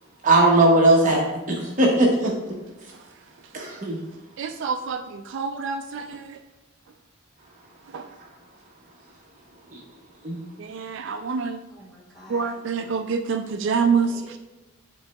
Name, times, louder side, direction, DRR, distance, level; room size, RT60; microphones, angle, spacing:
voice 1, 0.2-1.2 1.5-2.3 3.5-4.0 9.7-9.8 10.2-10.4, right 2 dB, 40° right, -1 dB, 0.8 m, -18 dB
voice 2, 4.4-6.2 7.9-8.0 10.6-11.6 12.3-14.1, right 5 dB, 60° right, 7 dB, 0.3 m, -26 dB
voice 3, 11.7-12.6 13.7-14.4, equal, ahead, -7 dB, 2.0 m, -47 dB
11.5 x 3.8 x 2.2 m, 1.1 s
head